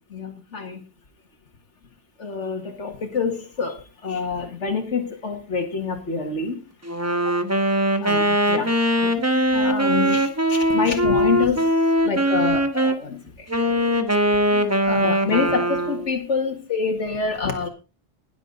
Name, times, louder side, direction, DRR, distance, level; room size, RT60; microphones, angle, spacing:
voice 1, 0.1-0.8 2.2-6.6 7.3-7.4 8.0-11.8 12.0-13.5 14.5-17.7, left 5 dB, 85° left, 3 dB, 2.3 m, -27 dB
Wind instrument woodwind instrument, 6.8-13.0 13.5-16.1, equal, 15° right, 1.2 m, -21 dB
20.5 x 7.4 x 3.9 m, 0.29 s
omnidirectional pair, 1.2 m